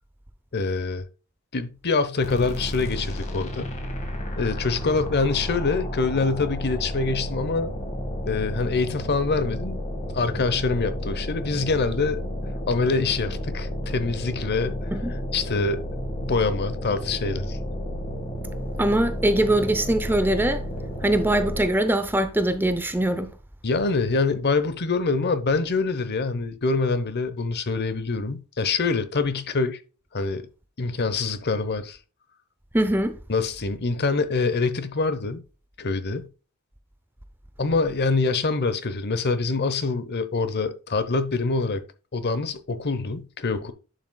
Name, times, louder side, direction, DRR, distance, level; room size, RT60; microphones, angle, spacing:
voice 1, 0.5-1.1 1.5-3.7 4.4-7.7 8.2-9.8 10.1-12.2 12.7-14.9 15.3-15.8 16.2-17.6 23.6-29.8 30.1-30.5 30.8-32.0 33.3-35.4 35.8-36.3 37.6-41.8 42.1-43.7, left 4 dB, 50° left, 0.9 m, -25 dB
sound 1, 2.2-21.8, equal, 35° left, 1.7 m, -32 dB
voice 2, 18.8-20.6 21.0-23.3 32.7-33.2, right 1 dB, 10° right, 0.6 m, -22 dB
11.0 x 6.2 x 2.3 m
head